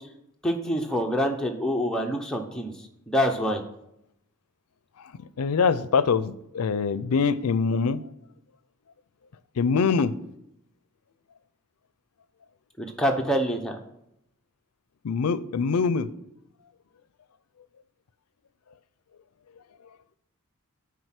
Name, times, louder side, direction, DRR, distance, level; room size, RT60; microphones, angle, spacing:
voice 1, 0.4-2.7 3.1-3.6 12.8-13.8, equal, 5° left, 1 dB, 0.8 m, -26 dB
voice 2, 5.0-8.1 9.6-10.2 15.0-16.1, left 5 dB, 90° left, 16 dB, 0.5 m, -24 dB
7.9 x 4.9 x 5.8 m, 0.80 s
head